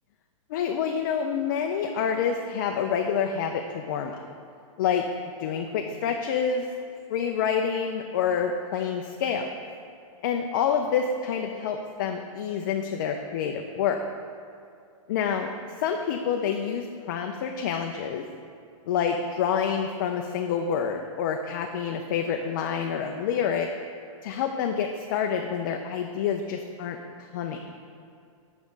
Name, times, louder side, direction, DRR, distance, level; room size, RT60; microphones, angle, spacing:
voice 1, 0.5-4.2 4.8-5.0 5.4-6.7 7.1-9.5 10.2-14.0 15.1-15.5 15.8-18.2 18.9-23.7 24.2-27.0 27.3-27.6, left 7 dB, 35° left, 3 dB, 0.4 m, -27 dB
6.3 x 5.9 x 5.1 m, 2.4 s
hypercardioid pair, 165°, 18 cm